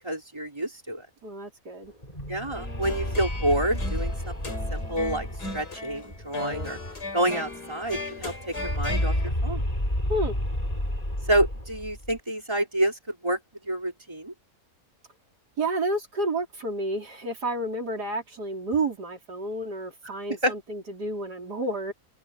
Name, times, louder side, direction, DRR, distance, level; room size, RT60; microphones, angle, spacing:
voice 1, 0.0-1.1 2.3-5.3 5.5-6.8 7.1-9.7 11.2-14.3 20.4-20.5, right 1 dB, 15° right, 4.7 m, -28 dB
voice 2, 1.2-1.9 10.1-10.4 15.6-21.9, right 2 dB, 90° right, 4.7 m, -30 dB
sound 1, 1.9-7.2 7.5-7.6 7.8-12.2, left 1 dB, 25° left, 7.0 m, -31 dB
sound 2, 2.5-9.3, left 3 dB, 85° left, 5.1 m, -37 dB
omnidirectional pair, 1.7 m